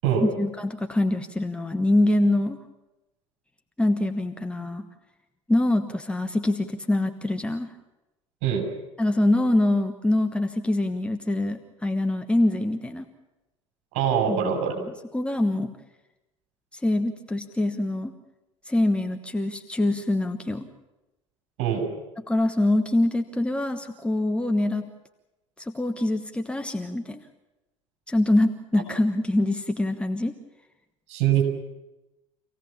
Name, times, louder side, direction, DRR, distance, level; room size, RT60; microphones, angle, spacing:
voice 1, 0.2-2.6 3.8-4.9 5.5-7.7 9.0-13.1 14.3-14.5 14.8-15.7 16.7-18.1 18.7-20.7 22.3-24.9 25.6-27.2 28.1-30.3, left 1 dB, 5° left, 5 dB, 1.2 m, -24 dB
voice 2, 13.9-14.7 21.6-21.9 31.1-31.4, right 8 dB, 50° right, 3 dB, 6.5 m, -23 dB
26.5 x 17.0 x 7.3 m, 1.0 s
figure-of-eight pair, 70°, 16 cm